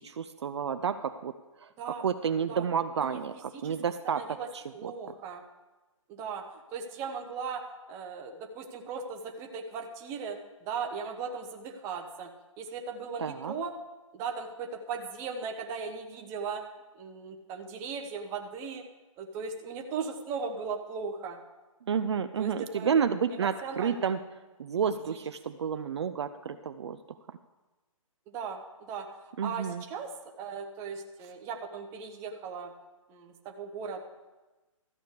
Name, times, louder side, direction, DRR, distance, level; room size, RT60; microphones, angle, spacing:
voice 1, 0.0-1.3 1.6-1.7 2.0-4.9 13.2-13.5 21.9-24.2 24.6-27.0 29.4-29.8, right 7 dB, 50° right, 10 dB, 0.5 m, -30 dB
voice 2, 3.0-3.7 4.1-4.5 4.7-5.4 6.1-6.4 6.7-7.6 7.9-12.3 12.6-13.7 14.1-16.6 17.0-18.8 19.2-21.4 22.4-23.0 23.6-24.1 25.1-25.2 28.3-28.6 28.9-29.1 29.4-30.1 30.4-32.7 33.1-34.0, right 5 dB, 15° right, 3 dB, 0.8 m, -38 dB
13.5 x 5.0 x 8.1 m, 1.2 s
hypercardioid pair, 155°, 18 cm